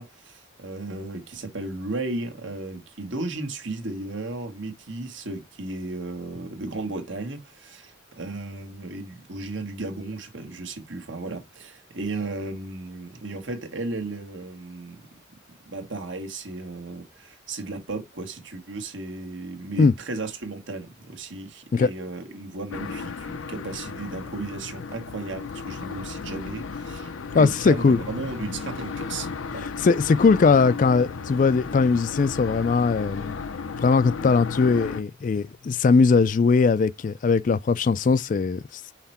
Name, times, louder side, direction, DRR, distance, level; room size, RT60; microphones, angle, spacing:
voice 1, 0.0-15.0 15.7-29.7, right 2 dB, 70° right, 1.5 m, -35 dB
sound 1, 22.7-35.0, left 5 dB, 90° left, 0.6 m, -34 dB
voice 2, 27.3-28.0 29.8-33.4 33.8-38.6, left 4 dB, 40° left, 0.3 m, -20 dB
5.8 x 4.5 x 4.2 m
head